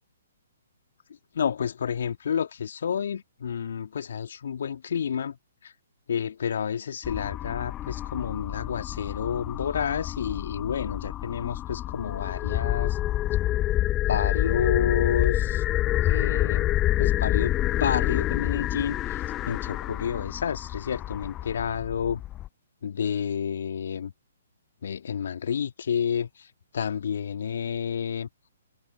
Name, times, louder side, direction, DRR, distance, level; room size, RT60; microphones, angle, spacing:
voice 1, 1.3-5.4 5.6-5.7 6.1-13.0 14.1-15.6 16.0-16.7 17.0-22.2 22.8-24.1 24.8-26.5 26.7-28.3, left 7 dB, 60° left, 2.0 m, -30 dB
sound 1, 7.0-22.5, left 14 dB, 20° left, 0.5 m, -28 dB
figure-of-eight pair, 125°, 0 cm